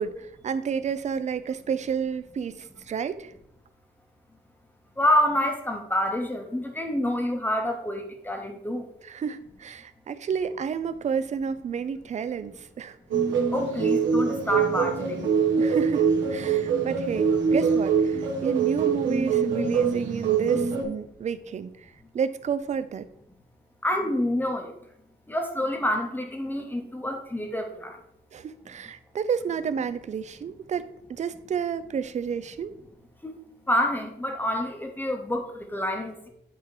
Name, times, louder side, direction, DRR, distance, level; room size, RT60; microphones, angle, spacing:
voice 1, 0.0-3.3 9.0-13.0 15.6-23.1 28.3-32.7, right 6 dB, 40° right, 13 dB, 0.4 m, -30 dB
voice 2, 5.0-8.9 13.5-15.2 23.8-24.7 25.3-27.9 33.2-33.3 33.7-36.3, left 1 dB, 10° left, 4 dB, 0.8 m, -27 dB
sound 1, 13.1-20.8, right 6 dB, 90° right, 1.1 m, -24 dB
8.0 x 2.9 x 4.7 m, 0.75 s
wide cardioid pair, 150°, 19 cm